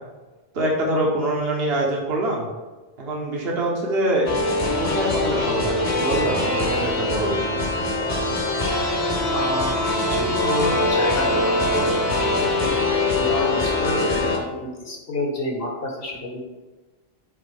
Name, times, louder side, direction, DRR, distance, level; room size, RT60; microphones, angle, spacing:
voice 1, 0.5-2.5 3.0-4.3 4.8-7.6, right 1 dB, 70° right, -1 dB, 1.3 m, -24 dB
sound 1, 4.3-14.4, left 2 dB, 40° left, 0.9 m, -23 dB
voice 2, 9.3-9.8 10.1-12.7 13.1-16.5, left 1 dB, 65° left, -1 dB, 1.6 m, -29 dB
7.8 x 4.1 x 3.4 m, 1.2 s
omnidirectional pair, 1.1 m